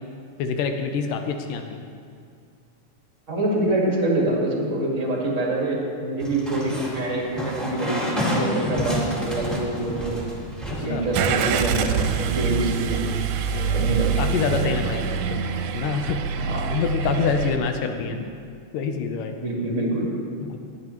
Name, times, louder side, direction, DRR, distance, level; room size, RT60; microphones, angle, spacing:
voice 1, 0.4-1.8 10.7-11.0 13.5-13.8 14.2-15.4 15.7-16.2 16.7-18.2 18.7-19.4 20.4-20.6, left 6 dB, 80° left, 5 dB, 2.4 m, -26 dB
voice 2, 3.3-10.2 10.8-13.1 13.7-14.3 16.3-16.7 18.1-18.2 19.4-20.1, right 2 dB, 35° right, -3 dB, 1.4 m, -25 dB
sound 1, 6.2-12.0, equal, ahead, 0.8 m, -29 dB
Car / Engine starting, 11.1-17.6, right 6 dB, 80° right, 2.1 m, -25 dB
20.0 x 7.8 x 3.0 m, 2.3 s
omnidirectional pair, 3.8 m